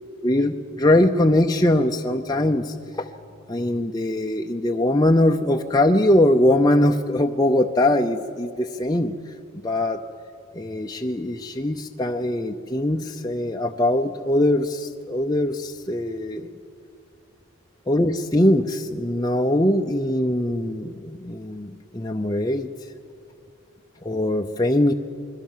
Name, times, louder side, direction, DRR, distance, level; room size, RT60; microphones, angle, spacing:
voice 1, 0.2-3.1 3.5-9.1 9.6-10.0 10.5-16.5 17.9-22.7 24.0-24.9, left 1 dB, 20° left, 3 dB, 0.6 m, -21 dB
27.0 x 21.5 x 7.4 m, 2.3 s
head